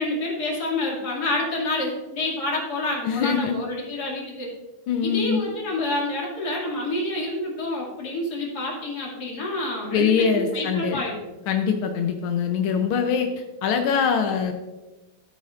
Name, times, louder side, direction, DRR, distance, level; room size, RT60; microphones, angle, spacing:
voice 1, 0.0-4.5 5.0-10.1 10.5-11.2, left 2 dB, 50° left, -3 dB, 2.9 m, -28 dB
voice 2, 3.0-3.6 4.9-5.4 9.9-11.0 11.5-14.5, left 6 dB, 90° left, 5 dB, 1.6 m, -23 dB
14.5 x 8.5 x 2.5 m, 1.1 s
omnidirectional pair, 2.2 m